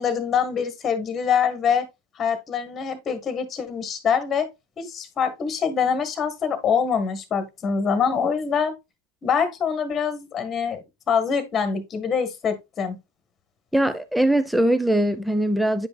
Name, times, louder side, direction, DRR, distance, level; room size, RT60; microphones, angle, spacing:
voice 1, 0.0-1.9 2.1-4.5 4.8-8.7 9.2-13.0, left 6 dB, 30° left, 1.5 m, -24 dB
voice 2, 13.7-15.9, right 1 dB, ahead, 0.7 m, -21 dB
9.0 x 5.3 x 2.3 m
hypercardioid pair, 105°, 0 cm